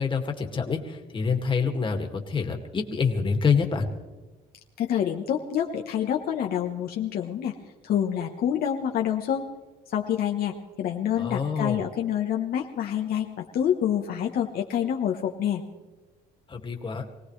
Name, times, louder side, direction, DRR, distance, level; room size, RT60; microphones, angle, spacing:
voice 1, 0.0-3.9 11.2-11.8 16.5-17.1, left 5 dB, 30° left, 3 dB, 2.2 m, -26 dB
voice 2, 4.8-7.5 7.8-9.5 9.9-15.6, left 9 dB, 60° left, 2 dB, 1.2 m, -27 dB
25.0 x 18.0 x 3.3 m, 1.2 s
cardioid pair, 110°, 17 cm